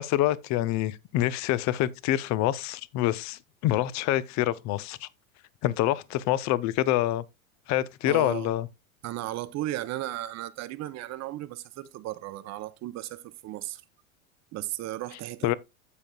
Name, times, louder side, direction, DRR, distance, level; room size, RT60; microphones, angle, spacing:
voice 1, 0.0-5.1 5.6-7.2 7.7-8.7 15.4-15.5, left 14 dB, 40° left, 0.7 m, -26 dB
voice 2, 8.1-8.5 9.0-13.8 14.5-15.5, right 15 dB, 40° right, 0.9 m, -35 dB
15.0 x 5.2 x 2.3 m
hypercardioid pair, 100°, 42 cm